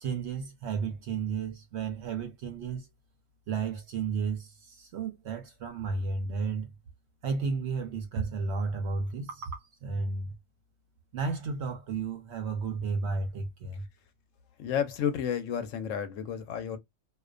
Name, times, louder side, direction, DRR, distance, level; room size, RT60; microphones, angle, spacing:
voice 1, 0.0-2.9 3.5-6.7 7.2-10.3 11.1-13.9, right 4 dB, 65° right, 0.7 m, -33 dB
voice 2, 14.6-16.8, left 8 dB, 70° left, 0.9 m, -31 dB
2.4 x 2.2 x 2.4 m
omnidirectional pair, 1.4 m